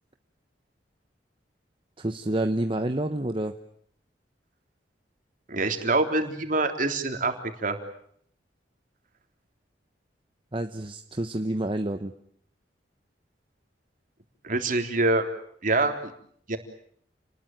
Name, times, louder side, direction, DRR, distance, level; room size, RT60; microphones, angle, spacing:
voice 1, 2.0-3.6 10.5-12.1, right 1 dB, 30° right, 7 dB, 1.1 m, -28 dB
voice 2, 5.5-7.3 7.6-7.8 14.4-15.3 15.6-16.1 16.5-16.6, right 2 dB, 50° right, 5 dB, 3.6 m, -25 dB
30.0 x 20.5 x 9.1 m, 0.66 s
head